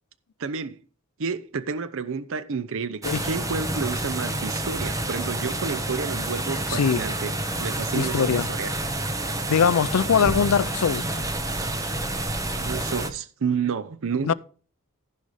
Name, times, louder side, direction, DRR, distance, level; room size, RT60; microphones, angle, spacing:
voice 1, 0.4-0.8 1.2-7.3 7.6-8.7 12.5-14.3, right 5 dB, 60° right, 0.6 m, -30 dB
sound 1, 3.0-13.1, right 1 dB, 15° right, 1.0 m, -29 dB
voice 2, 6.7-7.0 7.9-8.5 9.5-11.1 14.2-14.3, left 6 dB, 70° left, 0.4 m, -21 dB
15.0 x 5.4 x 4.8 m
head